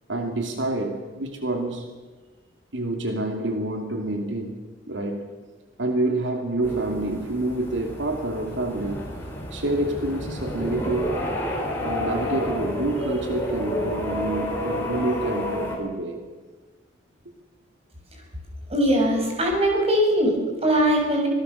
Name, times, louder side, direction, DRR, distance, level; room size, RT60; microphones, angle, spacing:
voice 1, 0.1-1.9 2.7-4.6 4.9-5.3 5.8-9.1 9.5-11.2 11.8-16.2, right 2 dB, 85° right, 4 dB, 2.6 m, -27 dB
sound 1, 6.6-15.8, equal, 15° left, 5.1 m, -30 dB
voice 2, 18.7-21.3, equal, 35° right, 1 dB, 6.5 m, -21 dB
25.0 x 19.0 x 6.9 m, 1.4 s
head